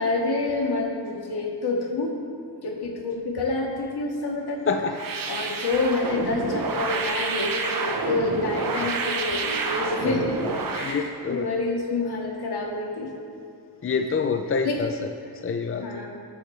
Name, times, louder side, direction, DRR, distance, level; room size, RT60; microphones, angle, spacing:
voice 1, 0.0-2.1 2.6-4.6 5.3-10.4 10.7-13.1 14.6-14.8 15.8-16.1, left 3 dB, 70° left, -1 dB, 2.1 m, -27 dB
voice 2, 4.7-5.0 8.8-8.9 10.0-10.3 10.6-11.5 13.8-14.9 15.4-15.9, left 5 dB, 35° left, 5 dB, 0.5 m, -27 dB
sound 1, 4.9-11.0, right 4 dB, 55° right, 1.1 m, -29 dB
20.0 x 8.5 x 3.3 m, 2.6 s
wide cardioid pair, 165°, 41 cm